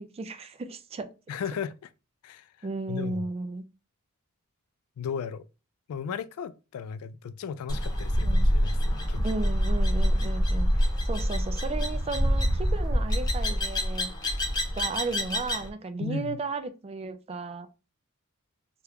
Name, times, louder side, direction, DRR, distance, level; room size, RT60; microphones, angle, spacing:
voice 1, 0.0-1.1 2.6-3.6 8.2-8.4 9.2-14.1 14.7-17.7, right 3 dB, 25° right, 0.3 m, -34 dB
voice 2, 1.3-1.9 2.2-3.3 5.0-5.5 5.9-9.2 16.0-16.4, left 6 dB, 75° left, 0.3 m, -36 dB
sound 1, 7.7-15.7, equal, 20° left, 0.8 m, -26 dB
2.9 x 2.3 x 3.4 m
head